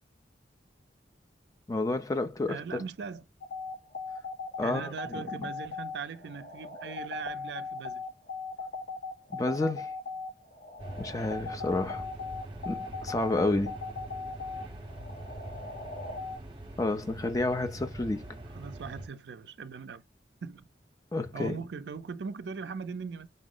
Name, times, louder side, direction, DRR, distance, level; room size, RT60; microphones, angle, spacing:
voice 1, 1.7-2.8 4.6-5.2 9.3-9.9 11.0-12.0 12.7-13.8 16.8-18.3 21.1-21.6, left 2 dB, 20° left, 0.4 m, -30 dB
voice 2, 2.5-3.2 4.6-8.0 18.5-20.0 20.4-20.7 21.3-23.3, right 5 dB, 75° right, 0.4 m, -39 dB
sound 1, 3.4-16.4, left 4 dB, 70° left, 1.0 m, -39 dB
sound 2, 10.8-19.1, right 1 dB, 30° right, 0.8 m, -43 dB
5.3 x 2.0 x 3.7 m
head